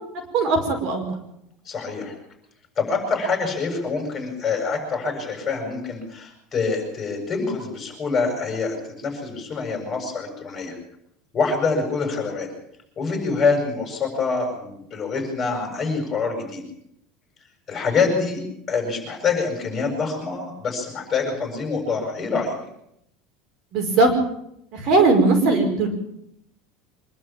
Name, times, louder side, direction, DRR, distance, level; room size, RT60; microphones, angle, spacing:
voice 1, 0.3-1.1 23.7-24.1 24.7-25.9, right 3 dB, 45° right, 3 dB, 5.1 m, -18 dB
voice 2, 1.7-2.1 2.8-10.8 11.3-12.5 13.0-16.6 17.7-18.4 18.7-22.5, left 4 dB, 20° left, 2 dB, 7.6 m, -25 dB
25.0 x 12.0 x 9.0 m, 0.77 s
cardioid pair, 165°, 0 cm